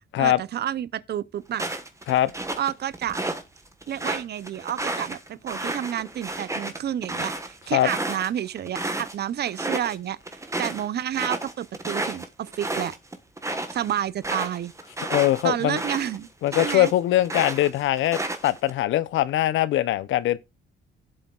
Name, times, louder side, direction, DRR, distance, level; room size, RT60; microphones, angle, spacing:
voice 1, 0.2-1.7 2.6-3.2 3.9-10.2 10.6-12.9 13.7-14.7 15.4-16.3 16.6-16.9, right 10 dB, 55° right, 0.6 m, -30 dB
sound 1, 1.5-3.4 3.8-9.1 9.5-10.0 10.3-16.9 17.2-18.7, right 2 dB, 15° right, 1.3 m, -31 dB
voice 2, 15.1-15.8 16.4-20.4, left 13 dB, 75° left, 0.6 m, -22 dB
16.0 x 7.8 x 2.4 m
cardioid pair, 90°, 20 cm